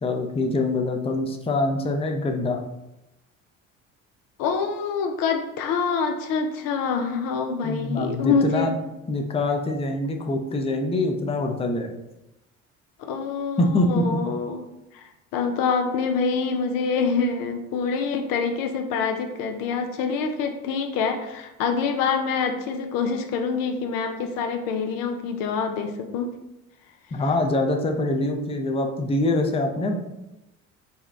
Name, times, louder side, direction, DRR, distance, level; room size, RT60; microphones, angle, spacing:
voice 1, 0.0-2.6 7.6-8.7 9.1-12.0 13.6-14.2 27.1-30.0, left 2 dB, 15° left, 3 dB, 0.5 m, -24 dB
voice 2, 4.4-8.7 13.0-14.7 14.9-26.3, left 5 dB, 70° left, 5 dB, 0.6 m, -26 dB
4.2 x 2.3 x 3.3 m, 0.92 s
hypercardioid pair, 60°, 35 cm